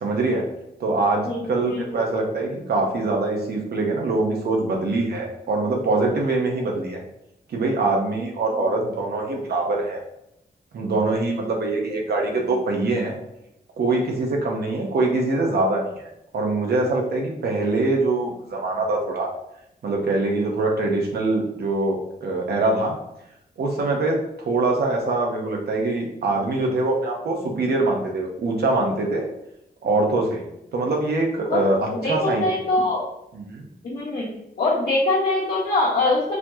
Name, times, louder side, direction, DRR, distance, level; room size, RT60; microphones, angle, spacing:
voice 1, 0.0-0.4 0.8-7.0 7.5-10.0 10.7-13.1 13.8-16.1 16.3-19.3 19.8-23.0 23.6-24.2 24.5-29.3 29.8-30.4 30.7-32.4 33.3-33.7, right 2 dB, 80° right, 1 dB, 0.8 m, -23 dB
voice 2, 32.0-33.0 33.8-34.3 34.6-36.4, left 2 dB, 75° left, -9 dB, 1.1 m, -22 dB
4.2 x 2.9 x 2.7 m, 0.83 s
wide cardioid pair, 150°, 16 cm